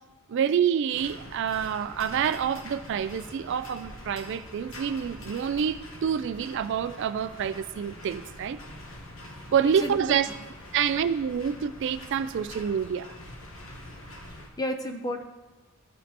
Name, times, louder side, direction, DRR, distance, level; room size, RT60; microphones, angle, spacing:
voice 1, 0.3-8.6 9.5-10.3 10.7-13.1, right 8 dB, 60° right, 0.3 m, -27 dB
sound 1, 0.9-14.5, left 1 dB, 70° left, 1.3 m, -44 dB
voice 2, 14.3-15.2, left 1 dB, 20° left, 0.6 m, -32 dB
14.5 x 5.1 x 2.9 m
head